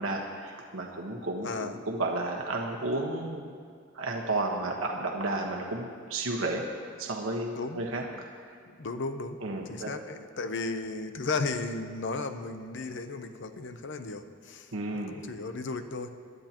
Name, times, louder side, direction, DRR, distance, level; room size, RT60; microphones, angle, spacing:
voice 1, 0.0-3.5 3.9-6.6 7.0-8.5 9.4-9.9 14.7-15.1, right 2 dB, 90° right, 0 dB, 1.3 m, -32 dB
voice 2, 1.4-1.8 7.6-7.8 8.1-8.2 8.8-9.4 9.7-16.1, left 3 dB, 65° left, 9 dB, 0.7 m, -35 dB
21.5 x 12.5 x 3.0 m, 2.1 s
head